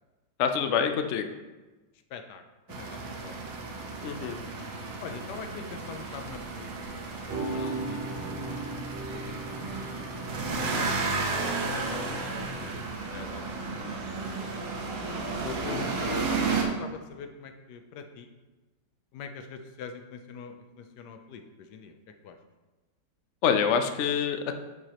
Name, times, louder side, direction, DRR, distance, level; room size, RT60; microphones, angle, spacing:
voice 1, 0.4-1.3 4.0-4.4 15.4-15.8 23.4-24.5, left 7 dB, 90° left, 6 dB, 0.6 m, -26 dB
voice 2, 2.1-2.4 2.7-3.5 5.0-8.1 8.4-10.4 11.8-12.8 13.1-14.8 15.7-18.3 19.1-22.4, left 6 dB, 70° left, 7 dB, 1.2 m, -45 dB
sound 1, 2.7-16.6, right 3 dB, 85° right, 1.7 m, -33 dB
sound 2, 7.0-13.0, right 2 dB, 45° right, 0.8 m, -38 dB
10.5 x 4.8 x 2.9 m, 1.2 s
omnidirectional pair, 2.0 m